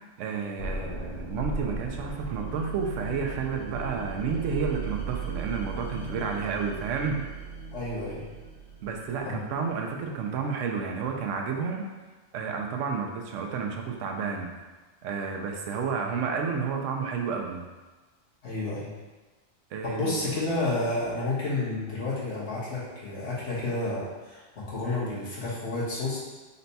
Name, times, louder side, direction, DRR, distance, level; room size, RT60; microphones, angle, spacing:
voice 1, 0.0-7.2 8.8-11.9 12.3-14.5 15.0-17.6 19.7-20.2, right 5 dB, 90° right, 2 dB, 0.9 m, -31 dB
sound 1, 0.6-9.4, right 3 dB, 90° left, 1.3 m, -36 dB
voice 2, 7.7-8.3 9.2-9.4 18.4-18.9 19.8-26.2, left 2 dB, 70° left, -8 dB, 1.5 m, -30 dB
4.1 x 2.2 x 4.0 m, 1.3 s
omnidirectional pair, 1.2 m